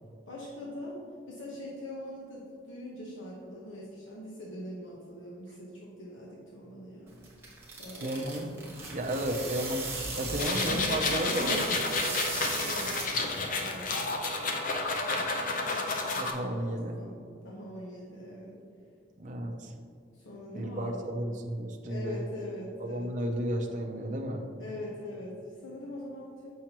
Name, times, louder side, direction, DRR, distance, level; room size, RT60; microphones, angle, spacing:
voice 1, 0.3-1.0 1.3-7.3 7.8-8.6 10.7-18.5 20.1-21.2 21.9-23.3 24.6-26.5, equal, 75° left, -4 dB, 1.0 m, -42 dB
sound 1, 7.1-13.4, right 3 dB, 15° right, 1.1 m, -38 dB
voice 2, 8.0-8.5 8.9-9.8 10.2-11.6 16.2-17.0 19.2-19.7 20.5-22.2 22.8-24.4, right 1 dB, 35° right, 1 dB, 0.5 m, -33 dB
sound 2, 10.4-16.3, left 3 dB, 40° left, 0.6 m, -30 dB
7.3 x 5.6 x 2.9 m, 2.3 s
head